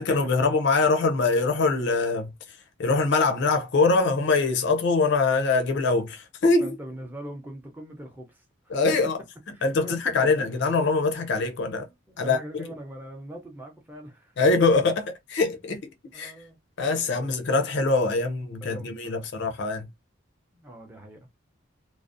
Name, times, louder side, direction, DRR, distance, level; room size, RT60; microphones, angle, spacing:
voice 1, 0.0-6.8 8.7-9.2 9.6-11.9 12.2-12.7 14.4-16.3 16.8-19.9, left 3 dB, 55° left, 0.4 m, -23 dB
voice 2, 6.6-8.8 9.5-10.0 12.1-14.3 16.1-16.6 17.2-17.3 18.6-19.3 20.5-21.3, right 1 dB, 10° right, 0.5 m, -42 dB
2.5 x 2.0 x 2.4 m
head